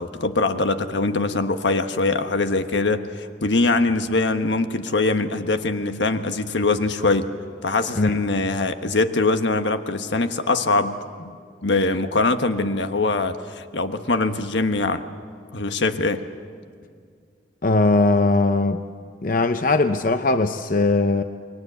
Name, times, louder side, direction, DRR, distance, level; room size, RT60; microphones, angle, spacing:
voice 1, 0.0-7.3 7.6-11.3 11.6-15.0 15.5-16.2, left 3 dB, 75° left, 8 dB, 1.3 m, -22 dB
voice 2, 17.6-18.8 19.2-21.2, left 2 dB, 45° left, 9 dB, 0.7 m, -19 dB
29.0 x 22.5 x 8.2 m, 2.1 s
head